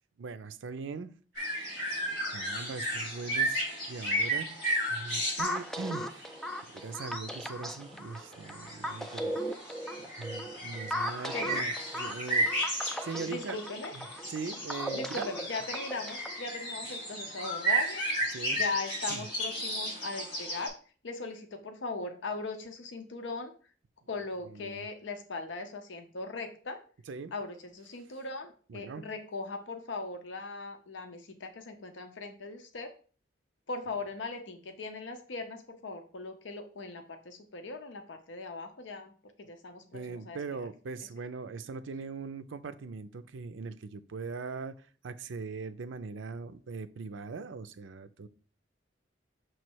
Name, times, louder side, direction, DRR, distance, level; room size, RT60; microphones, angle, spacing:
voice 1, 0.2-1.7 2.3-4.5 4.9-6.4 6.7-9.4 10.2-13.6 13.9-15.3 18.3-18.6 19.1-19.2 24.5-24.8 27.1-27.3 28.7-29.0 39.9-44.8 45.0-48.3, right 4 dB, 85° right, 0.5 m, -41 dB
sound 1, 1.3-20.7, right 1 dB, 55° left, 2.7 m, -34 dB
sound 2, 5.4-16.4, equal, ahead, 0.4 m, -38 dB
voice 2, 13.2-13.9 14.9-20.7 21.0-23.5 24.1-26.8 27.3-32.9 33.7-39.1 39.4-40.7, left 3 dB, 80° left, 0.7 m, -39 dB
6.5 x 3.1 x 4.5 m
head